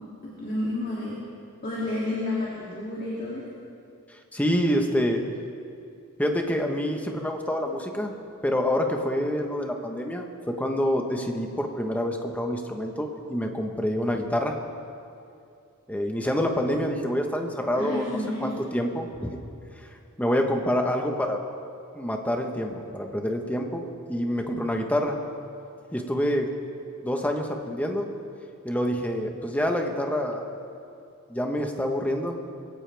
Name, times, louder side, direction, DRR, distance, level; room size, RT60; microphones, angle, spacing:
voice 1, 0.4-1.2 1.6-3.4 17.8-18.5, left 1 dB, 45° left, -7 dB, 2.8 m, -30 dB
voice 2, 4.3-5.2 6.2-8.1 8.4-14.6 15.9-19.3 20.2-21.4 21.9-25.2 25.9-26.5 27.0-28.1 28.6-30.5 31.3-32.4, equal, 5° left, 3 dB, 1.2 m, -27 dB
22.5 x 16.5 x 3.5 m, 2.6 s
head